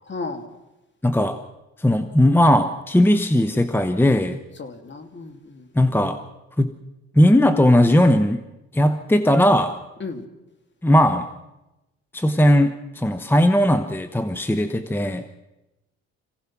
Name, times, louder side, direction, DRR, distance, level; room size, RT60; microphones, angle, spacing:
voice 1, 0.1-0.5 4.6-5.7 10.0-10.2, left 3 dB, 40° left, 7 dB, 2.6 m, -34 dB
voice 2, 1.0-1.4 1.8-4.4 5.7-6.2 6.6-6.7 7.1-8.4 8.7-9.8 10.8-11.3 12.1-15.2, left 1 dB, 5° left, 9 dB, 1.0 m, -18 dB
26.0 x 16.5 x 6.0 m, 0.98 s
cardioid pair, 90°, 30 cm